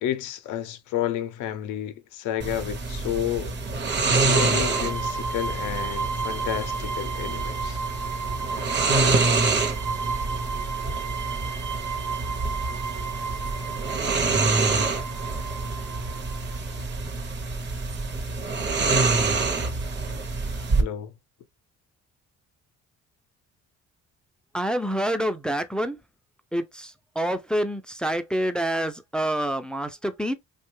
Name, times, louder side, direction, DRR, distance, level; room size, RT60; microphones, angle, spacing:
voice 1, 0.0-3.5 4.2-7.8 20.8-21.1, left 11 dB, 85° left, 0.5 m, -31 dB
sound 1, 2.4-20.8, right 3 dB, 35° right, 0.7 m, -26 dB
sound 2, 4.3-16.8, right 5 dB, 90° right, 0.8 m, -33 dB
voice 2, 24.5-26.0 26.5-30.3, right 1 dB, 5° left, 0.3 m, -27 dB
2.7 x 2.2 x 3.0 m
cardioid pair, 90°, 30 cm